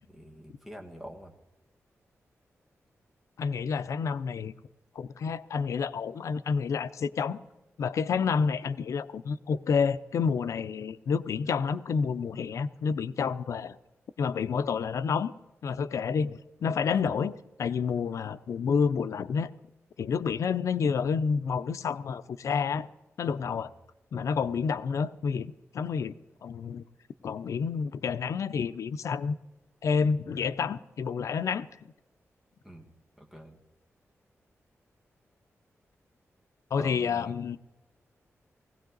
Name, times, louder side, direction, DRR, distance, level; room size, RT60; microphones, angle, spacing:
voice 1, 0.0-1.3 16.9-17.1 23.4-23.7 32.6-32.9 33.2-33.6 36.8-37.3, equal, 5° right, 1 dB, 1.8 m, -46 dB
voice 2, 3.4-4.5 5.0-7.4 7.8-13.8 14.2-15.3 15.6-19.5 20.0-22.9 23.2-23.7 24.1-26.2 26.4-26.8 27.2-29.4 29.8-31.7 36.7-37.6, left 6 dB, 90° left, 14 dB, 0.5 m, -29 dB
19.5 x 16.5 x 3.9 m, 1.0 s
wide cardioid pair, 170°, 5 cm